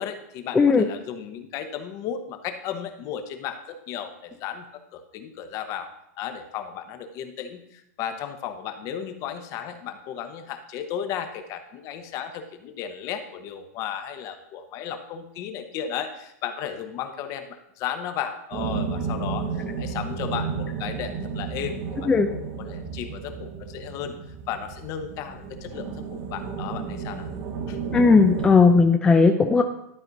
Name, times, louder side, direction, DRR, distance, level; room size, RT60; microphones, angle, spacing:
voice 1, 0.0-5.9 6.2-24.1 24.5-27.3 27.7-27.8, left 9 dB, 40° left, 8 dB, 0.9 m, -34 dB
voice 2, 0.5-0.8 22.1-22.3 27.9-29.6, left 4 dB, 10° left, 5 dB, 0.4 m, -17 dB
sound 1, 18.5-28.6, right 5 dB, 45° right, 1.0 m, -32 dB
12.0 x 4.3 x 4.0 m, 0.78 s
hypercardioid pair, 135°, 9 cm